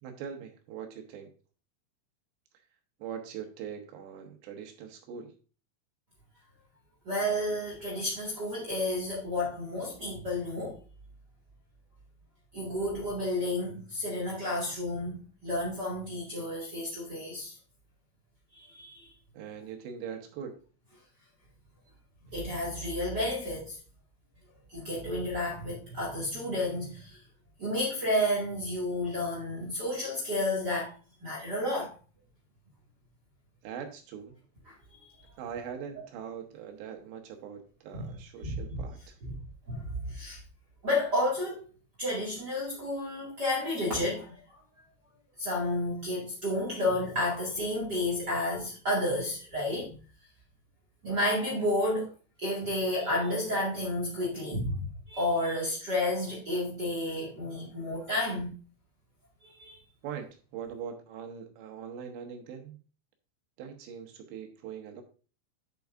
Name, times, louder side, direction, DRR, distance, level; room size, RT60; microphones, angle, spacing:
voice 1, 0.0-1.3 3.0-5.3 19.3-20.5 33.6-34.4 35.4-39.2 60.0-62.8 63.6-65.0, right 7 dB, 75° right, 3.3 m, -42 dB
voice 2, 7.0-10.8 12.5-17.5 18.5-19.1 22.3-23.8 24.7-27.2 27.6-30.9 31.2-31.9 37.9-38.1 38.4-38.8 39.2-39.3 39.7-40.4 40.8-41.7 42.0-44.4 45.4-50.0 51.0-52.1 52.4-58.5 59.6-59.8, left 1 dB, 40° right, 1.6 m, -31 dB
8.5 x 7.1 x 2.5 m
omnidirectional pair, 5.2 m